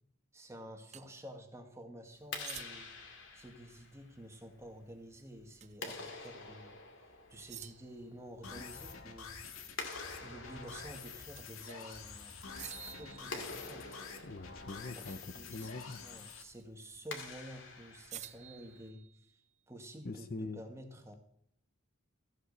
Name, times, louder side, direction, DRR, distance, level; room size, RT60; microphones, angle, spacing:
voice 1, 0.3-2.9 3.3-6.8 7.3-9.4 10.2-12.3 12.8-13.9 15.0-19.0 19.7-21.1, equal, 15° right, 4 dB, 1.8 m, -50 dB
sound 1, 0.9-1.1 2.4-3.1 5.6-5.9 6.2-6.3 7.5-8.1 11.4-11.9 12.6-13.9 16.3-16.6 18.1-19.5, right 12 dB, 30° right, 0.4 m, -50 dB
Clapping, 2.1-18.9, left 4 dB, 60° left, 2.3 m, -49 dB
sound 2, 8.4-16.4, left 5 dB, 75° left, 1.8 m, -48 dB
voice 2, 14.2-15.2 15.5-16.0 20.0-20.6, left 2 dB, 45° left, 10 dB, 0.7 m, -43 dB
14.5 x 8.0 x 6.6 m, 0.66 s
head